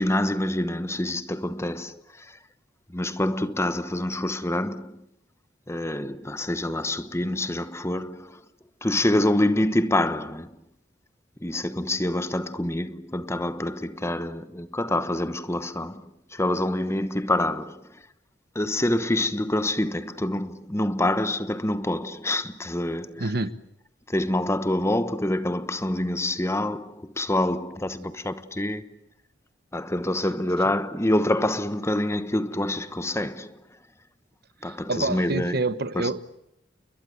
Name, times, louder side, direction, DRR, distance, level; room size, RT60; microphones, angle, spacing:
voice 1, 0.0-2.4 2.9-5.0 5.7-8.4 8.8-10.6 11.4-18.0 18.5-23.3 24.1-29.0 29.7-33.6 34.6-35.6 35.9-36.2, left 1 dB, 15° left, 1.1 m, -26 dB
voice 2, 23.2-23.6 34.6-36.2, right 2 dB, 55° right, 1.1 m, -27 dB
30.0 x 22.0 x 8.4 m
head